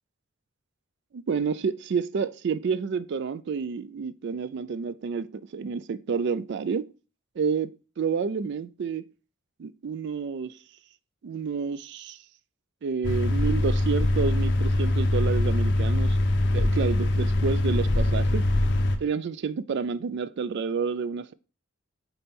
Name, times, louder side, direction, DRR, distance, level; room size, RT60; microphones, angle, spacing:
voice 1, 1.1-6.9 7.4-9.1 9.6-10.6 11.2-12.2 12.8-16.2 16.5-18.5 19.0-21.3, right 5 dB, 55° right, 0.3 m, -29 dB
sound 1, 13.0-19.0, left 1 dB, 55° left, 0.6 m, -23 dB
4.3 x 4.3 x 5.2 m
head